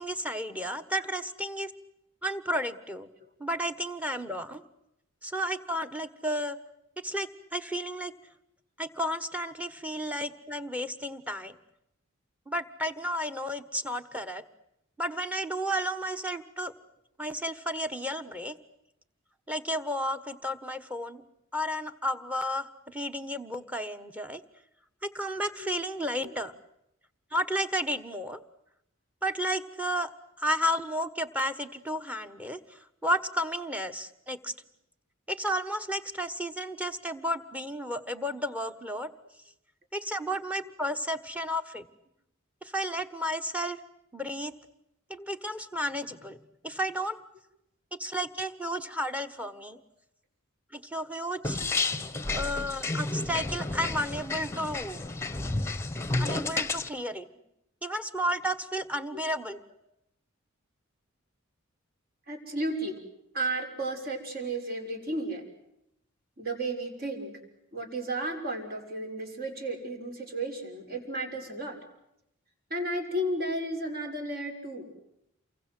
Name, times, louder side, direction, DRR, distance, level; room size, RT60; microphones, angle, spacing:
voice 1, 0.0-1.7 2.2-3.1 3.4-4.6 5.2-6.6 7.0-8.1 8.8-11.5 12.5-14.4 15.0-16.7 17.2-18.6 19.5-21.2 21.5-24.4 25.0-26.5 27.3-28.4 29.2-30.1 30.4-34.5 35.3-39.1 39.9-41.8 42.6-43.8 44.1-44.5 45.1-46.4 46.6-47.2 47.9-49.8 50.7-51.6 52.3-55.1 56.2-57.3 57.8-59.6, equal, 5° right, 12 dB, 1.4 m, -32 dB
sound 1, 51.4-56.9, left 3 dB, 15° left, 1.2 m, -31 dB
voice 2, 62.3-63.0 63.3-65.4 66.4-67.3 67.7-71.8 72.7-74.9, right 1 dB, 45° right, 4 dB, 6.1 m, -33 dB
29.0 x 24.0 x 7.8 m, 0.80 s
head